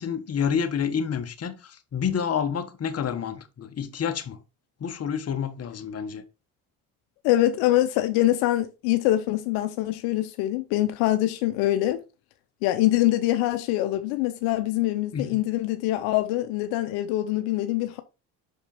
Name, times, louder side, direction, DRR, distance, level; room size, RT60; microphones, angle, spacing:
voice 1, 0.0-4.4 4.8-6.2 15.1-15.3, left 7 dB, 40° left, 1.3 m, -29 dB
voice 2, 7.2-12.0 12.6-18.0, left 15 dB, 85° left, 0.7 m, -24 dB
6.2 x 5.2 x 4.2 m
supercardioid pair, 75°, 36 cm